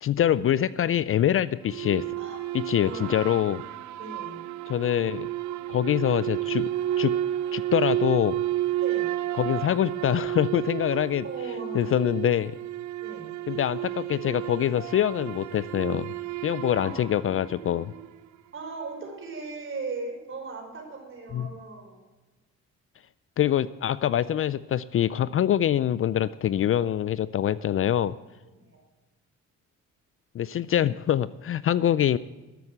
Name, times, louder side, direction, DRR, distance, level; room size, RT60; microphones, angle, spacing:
voice 1, 0.0-2.1 2.7-3.6 4.7-5.3 5.7-6.7 7.0-7.2 7.5-8.4 9.4-11.2 11.7-12.5 13.5-16.1 16.4-17.9 21.3-21.5 23.4-28.1 30.3-32.2, left 10 dB, 45° left, 17 dB, 0.4 m, -24 dB
sound 1, 1.6-18.2, right 13 dB, 70° right, 0.6 m, -31 dB
voice 2, 2.7-3.3 4.0-4.5 8.8-9.1 10.9-12.0 13.0-13.3 16.8-17.0 18.5-22.0 28.5-28.8, right 3 dB, 45° right, 2 dB, 4.3 m, -38 dB
13.0 x 8.0 x 7.9 m, 1.2 s
cardioid pair, 90°, 30 cm